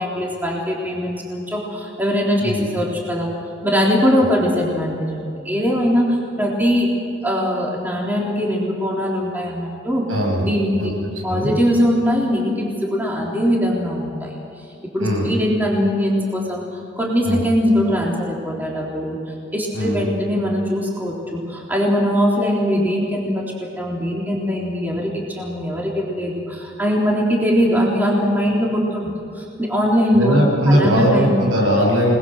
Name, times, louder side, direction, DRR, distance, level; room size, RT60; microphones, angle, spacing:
voice 1, 0.0-3.3 3.6-6.9 7.2-10.0 10.4-10.9 11.2-14.3 14.9-30.3 30.7-31.4, equal, 10° right, -3 dB, 3.6 m, -21 dB
voice 2, 10.1-10.5 10.8-10.9 11.3-11.6 15.0-15.3 17.2-17.4 19.7-20.1 30.1-32.1, equal, 90° right, -1 dB, 7.5 m, -19 dB
29.0 x 20.5 x 6.2 m, 2.7 s
head